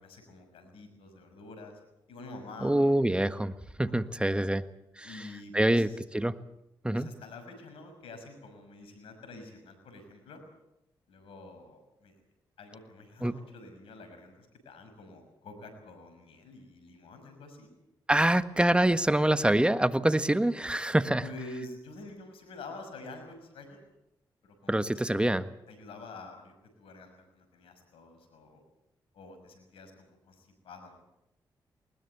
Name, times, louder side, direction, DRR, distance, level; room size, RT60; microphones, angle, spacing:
voice 1, 0.1-1.8 2.1-3.0 4.1-4.2 5.0-6.0 6.9-10.4 11.1-12.2 12.6-17.7 21.2-23.9 24.4-25.4 25.7-28.6 29.1-30.9, left 2 dB, 80° left, 7 dB, 6.0 m, -47 dB
voice 2, 2.6-3.5 3.8-4.6 5.0-5.1 5.5-5.9 6.1-6.3 6.8-7.1 13.2-13.3 18.1-21.2 24.7-25.4, right 1 dB, 10° right, 11 dB, 1.5 m, -25 dB
20.5 x 20.0 x 8.1 m, 0.86 s
supercardioid pair, 45°, 9 cm